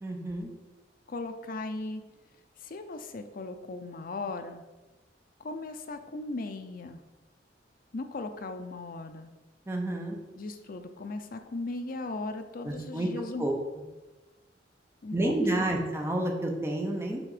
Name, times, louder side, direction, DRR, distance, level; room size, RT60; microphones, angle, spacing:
voice 1, 0.0-0.5 9.7-10.2 12.6-13.1 13.4-13.5 15.1-17.2, right 1 dB, 15° right, 1 dB, 0.9 m, -29 dB
voice 2, 1.1-2.0 2.6-4.6 5.4-7.0 7.9-9.3 10.4-13.5 15.0-15.8, left 2 dB, 50° left, 7 dB, 0.5 m, -37 dB
6.2 x 3.4 x 4.9 m, 1.1 s
head